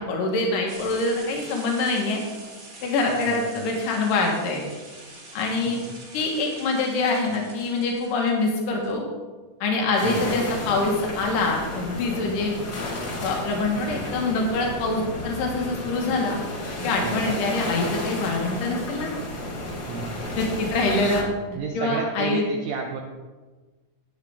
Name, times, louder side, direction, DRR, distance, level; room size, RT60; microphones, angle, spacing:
voice 1, 0.0-2.2 2.8-4.6 5.3-5.8 6.1-9.0 9.6-12.6 13.2-16.4 16.8-19.1 20.4-22.4, left 3 dB, 80° left, 0 dB, 2.9 m, -25 dB
sound 1, 0.7-8.9, right 2 dB, 30° right, 1.4 m, -44 dB
voice 2, 3.3-3.7 5.6-6.0 10.0-10.4 17.0-17.4 19.9-20.4 21.6-23.0, right 5 dB, 75° right, 2 dB, 2.0 m, -32 dB
sound 2, 10.0-21.2, left 1 dB, 45° left, 1.4 m, -32 dB
10.5 x 9.1 x 3.4 m, 1.3 s
omnidirectional pair, 3.8 m